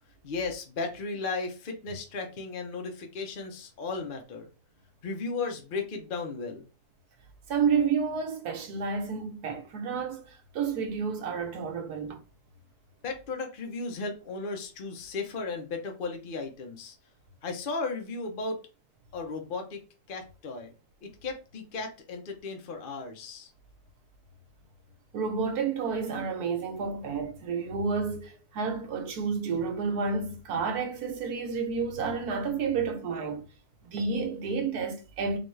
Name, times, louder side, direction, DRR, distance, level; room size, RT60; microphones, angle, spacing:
voice 1, 0.2-4.5 5.0-6.7 13.0-16.9 17.4-18.6 19.1-19.8 20.1-20.7 21.0-23.5, left 4 dB, 50° left, 0.6 m, -35 dB
voice 2, 7.5-12.2 25.1-33.5 33.8-35.4, right 5 dB, 75° right, 1.3 m, -30 dB
4.1 x 2.5 x 3.2 m
omnidirectional pair, 1.7 m